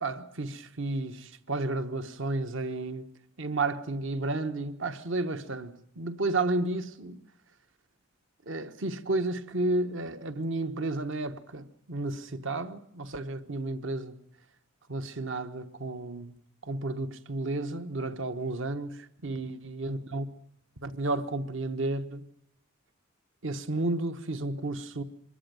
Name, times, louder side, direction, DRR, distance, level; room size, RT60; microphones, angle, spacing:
voice 1, 0.0-3.1 3.4-7.2 8.5-14.2 14.9-16.3 16.6-20.3 20.8-22.2 23.4-25.0, right 2 dB, 60° right, 1.1 m, -32 dB
24.0 x 13.5 x 9.1 m
head